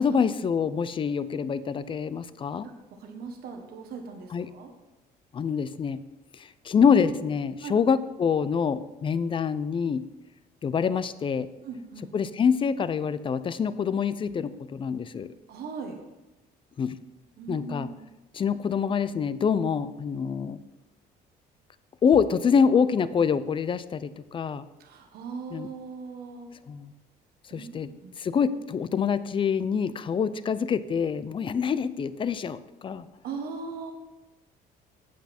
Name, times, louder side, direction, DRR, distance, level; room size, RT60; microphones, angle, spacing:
voice 1, 0.0-2.7 4.3-4.5 5.3-6.0 6.6-10.0 10.6-11.5 12.1-15.3 16.8-17.0 17.5-17.9 18.3-20.6 22.0-24.7 25.5-25.7 26.7-26.9 27.5-27.9 28.2-33.1, left 6 dB, 30° left, 15 dB, 0.5 m, -25 dB
voice 2, 3.0-4.7 7.6-7.8 11.6-12.1 15.5-16.0 17.4-18.1 24.8-26.5 27.5-28.2 33.2-33.9, right 5 dB, 65° right, 3 dB, 1.2 m, -39 dB
8.3 x 8.1 x 4.3 m, 1.0 s
cardioid pair, 110°, 17 cm